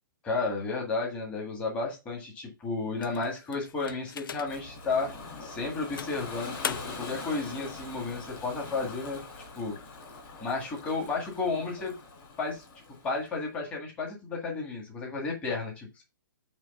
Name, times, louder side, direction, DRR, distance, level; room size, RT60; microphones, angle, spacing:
voice 1, 0.2-5.1 5.4-9.2 9.5-9.7 10.4-11.9 12.4-12.6 13.0-16.0, left 3 dB, 10° left, 0 dB, 1.7 m, -32 dB
sound 1, 3.0-4.7 5.3-5.4 6.0-7.2, left 8 dB, 70° left, 0.5 m, -39 dB
Ocean, 4.5-13.3, left 3 dB, 30° left, 3.5 m, -43 dB
9.0 x 3.1 x 5.4 m, 0.27 s
hypercardioid pair, 175°, 12 cm